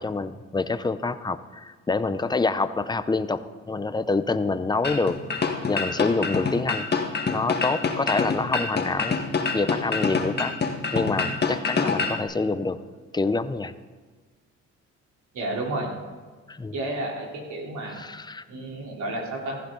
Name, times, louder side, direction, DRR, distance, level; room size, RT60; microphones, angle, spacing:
voice 1, 0.0-5.2 5.7-6.9 7.3-9.2 9.5-10.5 10.9-12.8 13.1-13.7 16.5-16.8 17.8-18.4, left 3 dB, 15° left, 12 dB, 0.7 m, -26 dB
sound 1, 4.8-12.2, left 4 dB, 35° left, 1.6 m, -26 dB
voice 2, 15.3-15.9 16.7-18.1 18.5-19.6, right 1 dB, 75° right, -1 dB, 3.7 m, -31 dB
15.0 x 14.5 x 3.9 m, 1.4 s
cardioid pair, 90°, 30 cm